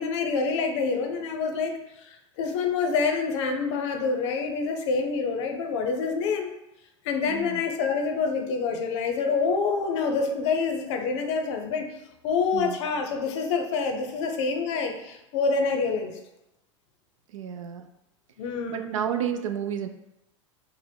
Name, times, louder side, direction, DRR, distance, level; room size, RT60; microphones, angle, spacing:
voice 1, 0.0-6.5 7.0-11.9 12.2-16.2 18.4-18.9, left 4 dB, 65° left, 5 dB, 0.6 m, -27 dB
voice 2, 7.3-7.6 12.5-12.8 17.3-17.9 18.7-19.9, right 8 dB, 85° right, 7 dB, 0.4 m, -31 dB
6.0 x 2.0 x 2.2 m, 0.89 s
hypercardioid pair, 100°, 16 cm